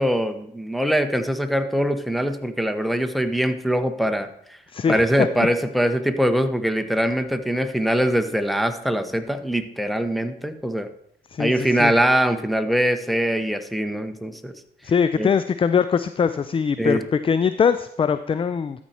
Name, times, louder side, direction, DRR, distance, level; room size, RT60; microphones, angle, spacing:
voice 1, 0.0-4.6 4.9-10.9 11.4-14.5 15.2-15.3 16.8-17.0, equal, ahead, 8 dB, 1.0 m, -22 dB
voice 2, 4.7-5.3 11.3-11.9 14.8-18.8, left 6 dB, 30° left, 12 dB, 0.4 m, -22 dB
13.0 x 4.4 x 4.4 m, 0.72 s
hypercardioid pair, 55°, 19 cm